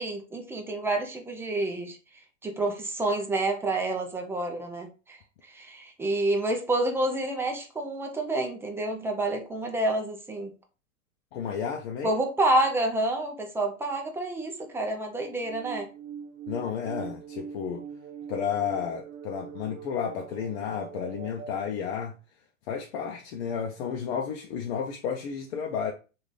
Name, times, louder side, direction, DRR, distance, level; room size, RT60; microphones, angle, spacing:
voice 1, 0.0-2.0 2.4-5.2 5.5-10.5 12.0-15.9, right 2 dB, 5° right, 0.5 m, -28 dB
voice 2, 11.3-12.1 16.5-17.8 18.3-22.1 22.7-25.9, left 7 dB, 55° left, 0.6 m, -32 dB
sound 1, 15.4-21.6, right 7 dB, 65° right, 0.8 m, -42 dB
3.1 x 2.6 x 3.7 m
hypercardioid pair, 115°, 38 cm